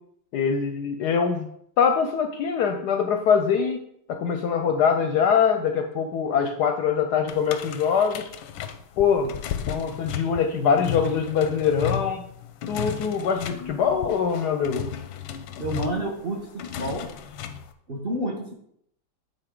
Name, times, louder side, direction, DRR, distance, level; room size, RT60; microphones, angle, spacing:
voice 1, 0.3-1.5 1.8-3.8 4.1-8.3 9.0-9.3 9.7-12.2 12.7-14.9, left 6 dB, 70° left, 6 dB, 1.0 m, -23 dB
sound 1, 7.3-17.7, left 9 dB, 90° left, 1.4 m, -34 dB
voice 2, 15.6-17.1 17.9-18.5, right 1 dB, 35° right, -1 dB, 1.0 m, -29 dB
9.1 x 4.4 x 3.7 m, 0.69 s
omnidirectional pair, 2.1 m